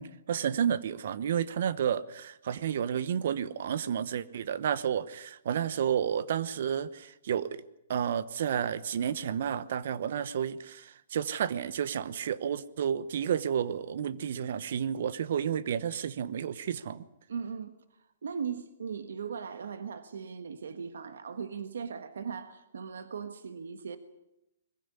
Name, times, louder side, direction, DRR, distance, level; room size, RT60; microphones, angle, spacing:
voice 1, 0.0-7.6 7.9-17.1, right 8 dB, 65° right, 17 dB, 1.1 m, -31 dB
voice 2, 17.3-24.0, right 6 dB, 85° right, 10 dB, 1.5 m, -38 dB
21.5 x 15.5 x 9.8 m, 0.88 s
hypercardioid pair, 150°, 0 cm